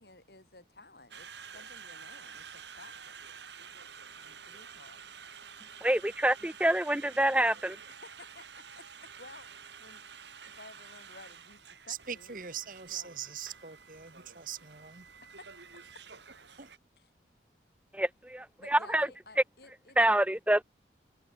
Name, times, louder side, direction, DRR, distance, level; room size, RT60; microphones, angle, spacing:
voice 1, 0.0-3.2 4.1-5.1 7.9-9.5 9.8-12.4 12.9-13.1 15.4-15.5 17.0-17.1 18.6-20.3, left 2 dB, 60° left, 7.3 m, -54 dB
Conversation, 1.1-16.8, right 6 dB, 80° right, 6.6 m, -50 dB
voice 2, 5.8-7.8 17.9-19.1 20.0-20.6, right 1 dB, 5° right, 0.8 m, -27 dB
voice 3, 11.9-15.1 16.6-16.7, right 8 dB, 50° right, 1.5 m, -41 dB
head